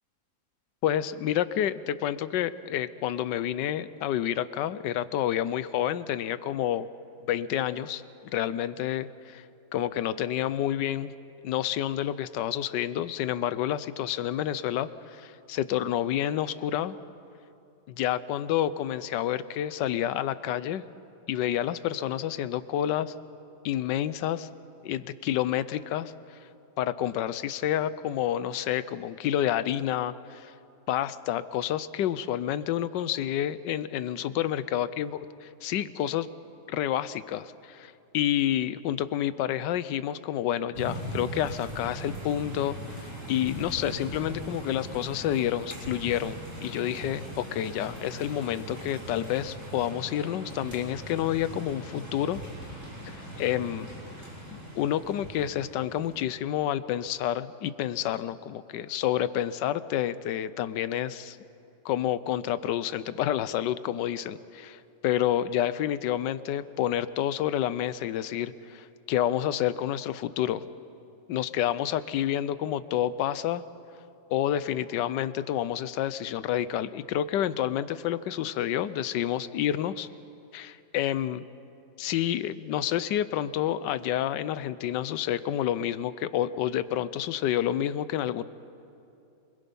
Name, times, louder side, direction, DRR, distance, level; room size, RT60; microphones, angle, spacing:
voice 1, 0.8-6.9 7.3-8.0 8.3-9.4 9.7-11.1 11.4-17.0 17.9-20.8 21.3-23.1 23.6-24.5 24.8-26.1 26.8-30.5 30.9-35.1 35.6-36.3 36.7-52.4 53.1-53.9 54.8-61.4 61.8-70.7 71.3-73.6 74.3-80.1 80.5-81.5 82.0-88.4, left 11 dB, 90° left, 15 dB, 1.3 m, -29 dB
sound 1, 40.7-56.3, right 1 dB, 45° right, 5.7 m, -40 dB
27.0 x 21.5 x 5.4 m, 2.7 s
omnidirectional pair, 1.8 m